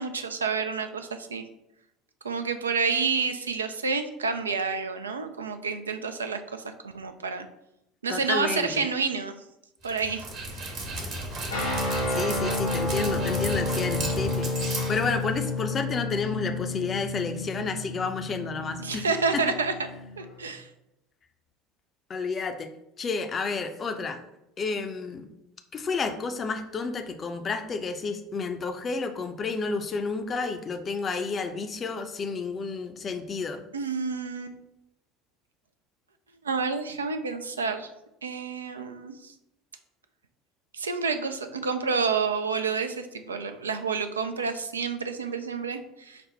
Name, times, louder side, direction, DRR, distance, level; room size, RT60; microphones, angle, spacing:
voice 1, 0.0-1.4 2.2-7.5 8.0-9.4 9.8-10.9 18.8-19.7 20.2-20.7 33.7-34.6 36.4-37.9 38.2-39.3 40.7-46.2, right 5 dB, 75° right, 8 dB, 0.3 m, -29 dB
voice 2, 8.1-8.7 12.0-19.1 19.3-19.4 22.1-22.7 23.0-24.2 24.6-25.3 25.7-33.6, left 4 dB, 30° left, 7 dB, 0.5 m, -31 dB
Dog, 9.8-15.6, right 1 dB, 50° right, 1.1 m, -34 dB
sound 1, 11.5-20.4, left 2 dB, 80° left, 1.3 m, -31 dB
5.1 x 2.1 x 3.9 m, 0.85 s
figure-of-eight pair, 65°, 0 cm